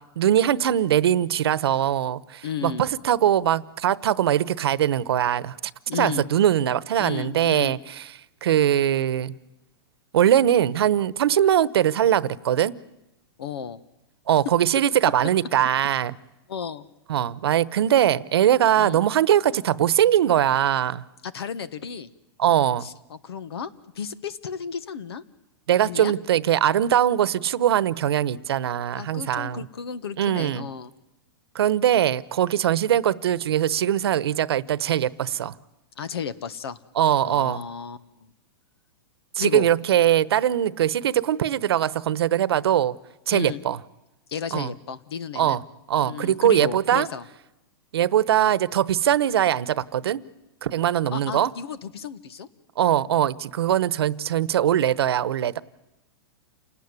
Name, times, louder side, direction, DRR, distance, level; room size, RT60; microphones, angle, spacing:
voice 1, 0.2-5.6 5.9-8.1 8.4-9.3 10.1-12.7 14.3-16.1 17.1-21.0 22.4-22.9 25.7-29.7 30.2-30.7 31.5-35.5 37.0-37.6 39.3-42.9 43.3-43.8 44.5-44.7 45.3-45.6 45.9-47.1 47.9-50.2 50.6-51.5 52.8-55.6, right 10 dB, 80° right, 1.0 m, -21 dB
voice 2, 2.4-2.9 5.9-6.2 7.0-7.8 13.4-13.8 16.5-16.9 18.8-19.0 21.2-22.1 22.8-25.2 25.8-26.1 28.9-30.9 36.0-36.8 37.2-38.3 39.4-39.7 43.3-43.6 44.3-45.6 46.0-47.2 51.1-52.5, left 7 dB, 85° left, 1.6 m, -33 dB
28.5 x 18.5 x 9.8 m
hypercardioid pair, 145°, 13 cm